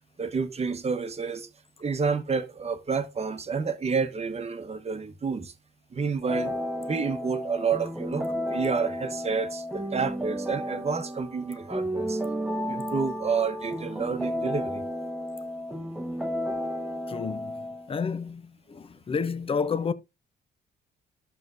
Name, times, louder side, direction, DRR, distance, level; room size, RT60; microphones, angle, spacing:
voice 1, 0.2-1.5 1.8-5.5 5.9-6.5 6.9-12.2 12.5-14.8, right 5 dB, 30° right, 1.0 m, -29 dB
sound 1, 6.3-17.9, equal, 5° right, 1.0 m, -32 dB
voice 2, 17.1-17.6 17.9-18.4 18.7-19.9, left 5 dB, 30° left, 0.6 m, -30 dB
11.0 x 6.7 x 2.5 m
cardioid pair, 90°, 20 cm